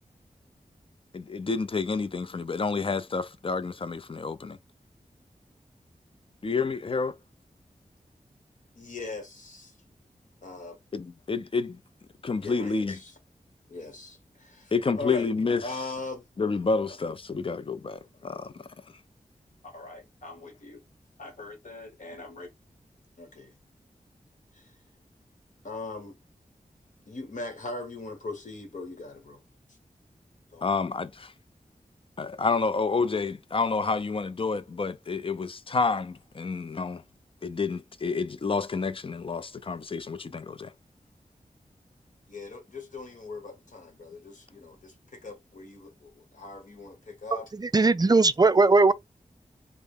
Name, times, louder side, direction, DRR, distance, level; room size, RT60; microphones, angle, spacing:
voice 1, 1.1-4.6 6.4-7.1 10.9-11.8 12.2-13.0 14.7-15.6 16.4-18.5 30.6-31.3 32.2-37.0 37.4-40.7, left 4 dB, 40° left, 0.5 m, -29 dB
voice 2, 8.8-9.7 10.4-10.8 12.4-13.1 13.7-15.3 15.6-16.2 16.9-17.0 19.6-20.8 21.2-22.5 23.2-23.5 24.5-24.7 25.6-26.2 27.1-29.4 30.5-30.7 42.3-47.5, left 3 dB, 65° left, 1.2 m, -40 dB
voice 3, 47.6-48.9, right 3 dB, 30° right, 0.4 m, -19 dB
3.2 x 2.1 x 3.6 m
cardioid pair, 50°, 14 cm